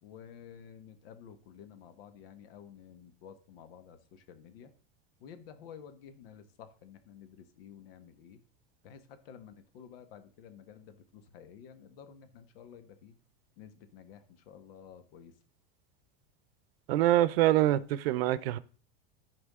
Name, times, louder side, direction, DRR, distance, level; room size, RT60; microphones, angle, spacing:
voice 1, 0.0-4.7 5.2-8.4 8.8-13.2 13.6-15.4, left 8 dB, 75° left, 1.5 m, -52 dB
voice 2, 16.9-18.6, right 14 dB, 85° right, 0.7 m, -25 dB
13.5 x 5.0 x 3.7 m
supercardioid pair, 150°, 29 cm